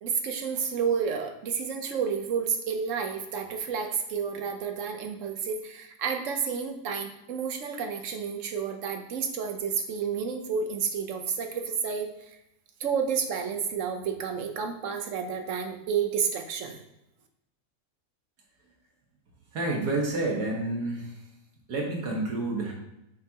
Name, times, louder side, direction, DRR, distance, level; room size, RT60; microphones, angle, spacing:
voice 1, 0.0-12.1 12.8-16.8, right 6 dB, 55° right, 5 dB, 1.1 m, -30 dB
voice 2, 19.5-21.3 21.7-22.7, right 2 dB, 80° right, -1 dB, 2.1 m, -29 dB
7.2 x 5.6 x 2.9 m, 0.87 s
omnidirectional pair, 1.7 m